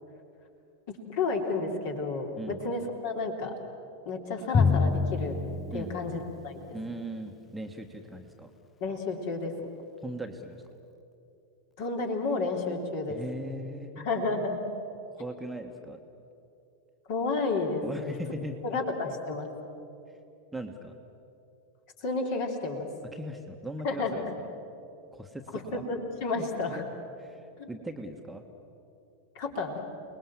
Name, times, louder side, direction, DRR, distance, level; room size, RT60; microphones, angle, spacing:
voice 1, 0.9-3.5 4.0-5.4 5.7-6.6 8.8-9.5 11.8-13.2 14.0-14.6 17.1-18.1 18.6-19.5 22.0-22.9 23.8-24.2 25.5-26.8 27.6-27.7 29.3-29.8, left 3 dB, 50° left, 2 dB, 3.4 m, -31 dB
Drum, 4.5-6.9, left 4 dB, 20° left, 0.6 m, -27 dB
voice 2, 6.7-8.5 10.0-10.6 13.1-14.1 15.1-16.0 17.8-18.8 20.5-21.0 23.1-24.5 25.1-25.8 26.3-26.4 26.7-26.9 27.2-28.4, right 1 dB, 5° right, 4 dB, 1.5 m, -39 dB
29.0 x 20.0 x 7.5 m, 2.8 s
figure-of-eight pair, 90°, 0 cm